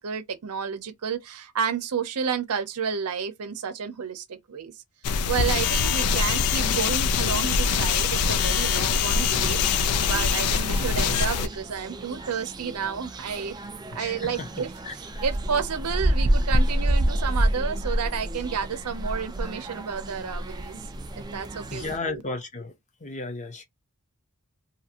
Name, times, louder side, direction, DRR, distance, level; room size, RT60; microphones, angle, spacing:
voice 1, 0.0-4.7 5.3-13.6 13.9-20.8 21.2-22.2, right 6 dB, 85° right, 0.6 m, -31 dB
sound 1, 5.0-11.5, left 6 dB, 75° left, 0.4 m, -23 dB
sound 2, 9.4-22.0, right 1 dB, 20° right, 0.4 m, -29 dB
voice 2, 10.7-11.5 13.9-14.9 21.7-22.7 23.0-23.6, left 3 dB, 35° left, 0.7 m, -35 dB
2.7 x 2.5 x 2.8 m
head